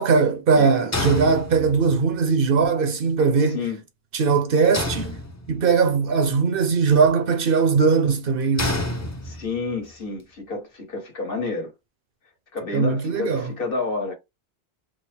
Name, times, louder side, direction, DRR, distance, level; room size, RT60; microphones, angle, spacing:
voice 1, 0.0-3.6 4.1-5.2 5.5-8.8 12.7-13.5, right 5 dB, 65° right, 0.8 m, -20 dB
voice 2, 0.5-0.9 3.5-3.8 9.2-11.7 12.5-14.2, left 3 dB, 60° left, 1.5 m, -29 dB
sound 1, 0.9-2.0 4.7-5.8 8.6-9.7, left 1 dB, 20° left, 0.6 m, -28 dB
3.2 x 2.1 x 4.2 m
omnidirectional pair, 1.1 m